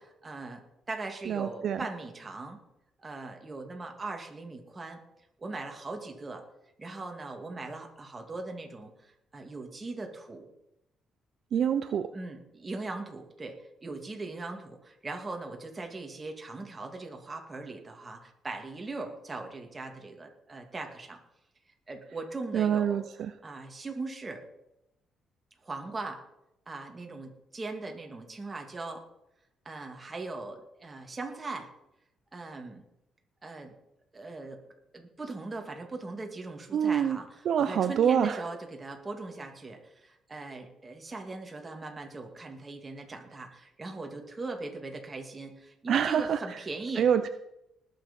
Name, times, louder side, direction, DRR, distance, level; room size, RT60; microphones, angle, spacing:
voice 1, 0.2-0.6 0.9-2.6 3.0-5.0 5.4-6.4 6.8-10.5 12.1-21.2 21.9-23.1 23.4-24.4 25.6-26.2 26.7-29.0 29.6-31.7 32.3-32.8 33.4-33.8 34.1-34.6 34.9-47.1, right 3 dB, 25° right, 3 dB, 2.4 m, -40 dB
voice 2, 1.3-1.8 11.5-12.1 22.5-23.3 36.7-37.2 37.5-38.4 45.9-46.4 47.0-47.3, right 8 dB, 65° right, 10 dB, 0.6 m, -26 dB
19.5 x 6.7 x 5.4 m, 0.86 s
cardioid pair, 90°, 0 cm